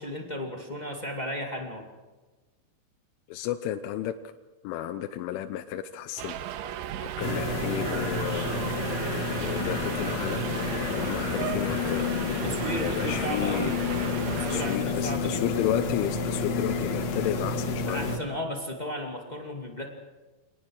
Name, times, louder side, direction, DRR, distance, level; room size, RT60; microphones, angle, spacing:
voice 1, 0.0-1.9 12.3-13.8 14.3-15.4 17.9-19.9, equal, 35° left, 2 dB, 0.6 m, -34 dB
voice 2, 3.3-4.1 4.6-6.3 7.0-8.5 9.4-10.4 10.8-12.1 12.8-13.7 14.2-18.0, left 11 dB, 85° left, 7 dB, 3.3 m, -33 dB
Subway metro underground, 6.2-14.8, right 10 dB, 85° right, 3.5 m, -35 dB
sound 1, 7.2-18.2, left 4 dB, 50° left, 2.1 m, -30 dB
27.5 x 19.5 x 6.4 m, 1.2 s
omnidirectional pair, 5.4 m